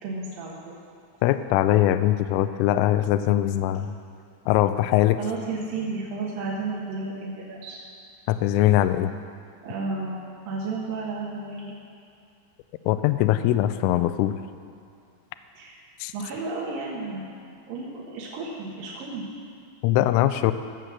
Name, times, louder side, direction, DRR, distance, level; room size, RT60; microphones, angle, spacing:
voice 1, 0.0-0.8 5.2-7.8 9.6-10.2 10.5-11.7 15.5-15.8 16.1-17.3 17.7-19.2, right 3 dB, 60° right, -5 dB, 2.5 m, -32 dB
voice 2, 1.2-4.0 4.5-5.2 8.3-9.1 12.9-14.3 16.0-16.1 19.8-20.5, left 13 dB, 85° left, 11 dB, 3.0 m, -21 dB
16.5 x 7.8 x 6.6 m, 2.4 s
omnidirectional pair, 6.0 m